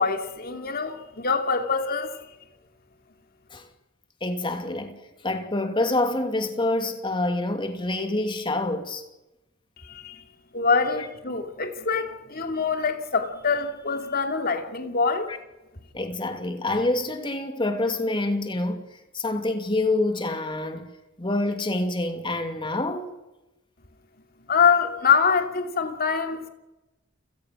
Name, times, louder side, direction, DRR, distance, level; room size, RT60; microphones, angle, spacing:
voice 1, 0.0-2.2 9.8-10.2 10.5-15.3 24.5-26.4, left 5 dB, 45° left, 2.7 m, -24 dB
voice 2, 4.2-9.0 10.9-11.1 15.9-18.9 19.1-20.9 21.2-23.1, left 2 dB, 25° left, 2.6 m, -27 dB
29.5 x 17.5 x 6.2 m
head